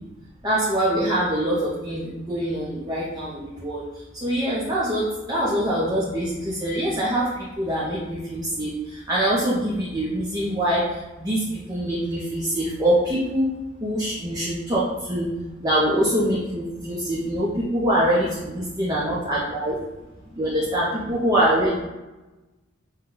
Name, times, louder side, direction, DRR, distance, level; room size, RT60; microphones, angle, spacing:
voice 1, 0.4-3.8 4.1-13.5 13.8-15.3 15.6-19.8 20.3-21.8, right 1 dB, 20° right, -7 dB, 0.7 m, -24 dB
5.6 x 2.3 x 3.8 m, 1.1 s
head